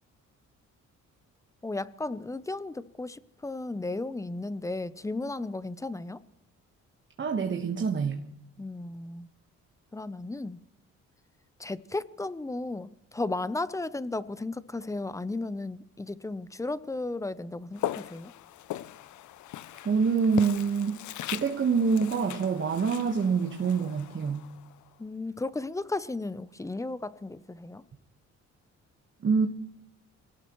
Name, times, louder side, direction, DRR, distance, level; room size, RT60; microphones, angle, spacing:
voice 1, 1.6-6.2 8.6-9.3 9.9-10.6 11.6-18.3 25.0-27.8, left 2 dB, 10° left, 0.6 m, -34 dB
voice 2, 7.2-8.3 19.8-24.5 29.2-29.5, right 5 dB, 40° right, 1.4 m, -26 dB
Walk footsteps, 17.7-24.9, left 13 dB, 75° left, 0.6 m, -39 dB
26.0 x 17.5 x 3.1 m
cardioid pair, 90°, 30 cm